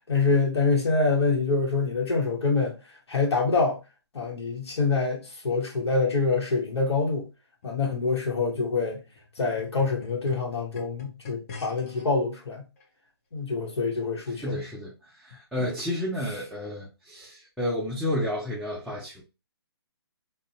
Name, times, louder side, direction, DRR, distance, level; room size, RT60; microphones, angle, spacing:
voice 1, 0.1-2.7 3.1-3.8 4.1-7.3 7.6-9.0 9.4-12.6 13.3-14.6, left 4 dB, 75° left, 0.8 m, -25 dB
sound 1, 7.6-12.0 12.8-12.9, left 4 dB, 35° left, 0.8 m, -44 dB
voice 2, 14.3-19.2, left 1 dB, ahead, 0.4 m, -31 dB
2.6 x 2.0 x 2.6 m
hypercardioid pair, 145°, 14 cm